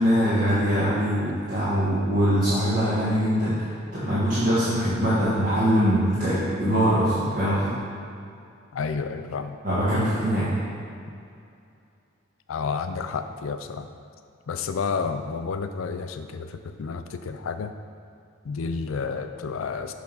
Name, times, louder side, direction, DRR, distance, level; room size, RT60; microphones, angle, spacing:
voice 1, 0.0-7.7 9.6-10.6, equal, 45° right, -12 dB, 1.5 m, -23 dB
voice 2, 8.7-9.6 12.5-13.9 14.5-17.7 18.4-19.9, left 5 dB, 80° left, 8 dB, 0.4 m, -30 dB
6.6 x 3.5 x 5.5 m, 2.5 s
head